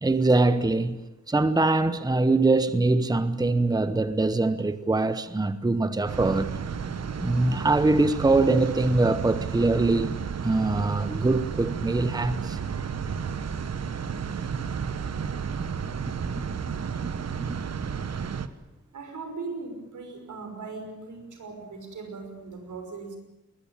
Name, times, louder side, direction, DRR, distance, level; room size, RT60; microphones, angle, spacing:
voice 1, 0.0-1.0 1.3-6.6 7.2-10.1 10.4-12.6, right 2 dB, 15° right, 1.0 m, -23 dB
sound 1, 6.1-18.5, right 6 dB, 60° right, 1.3 m, -32 dB
voice 2, 18.9-23.2, right 4 dB, 90° right, 6.0 m, -39 dB
21.5 x 20.5 x 9.0 m
wide cardioid pair, 145°, 29 cm